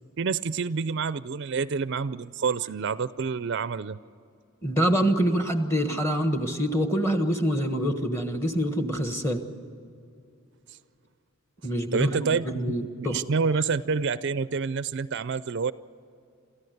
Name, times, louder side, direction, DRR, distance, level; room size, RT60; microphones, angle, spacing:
voice 1, 0.2-4.0 10.7-10.8 11.9-12.5 13.0-15.7, right 5 dB, 50° right, 15 dB, 0.4 m, -28 dB
voice 2, 4.6-9.5 11.6-13.2, equal, 10° left, 6 dB, 1.4 m, -26 dB
27.5 x 14.5 x 8.0 m, 2.5 s
head